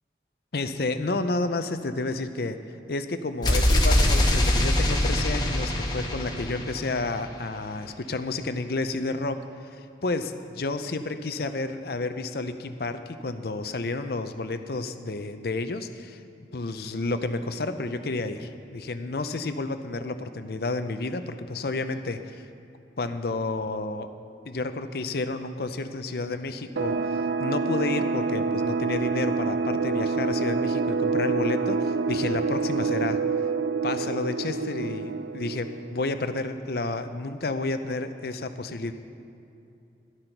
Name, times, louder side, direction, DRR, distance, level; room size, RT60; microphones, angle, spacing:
voice 1, 0.5-2.6 2.9-16.2 16.5-22.4 23.0-24.1 24.5-33.2 33.8-38.9, left 2 dB, 55° left, 9 dB, 0.6 m, -31 dB
sound 1, 3.4-7.3, left 1 dB, 20° left, 1.1 m, -23 dB
sound 2, 26.8-36.1, right 4 dB, 80° right, 0.5 m, -27 dB
12.0 x 11.5 x 4.6 m, 2.6 s
head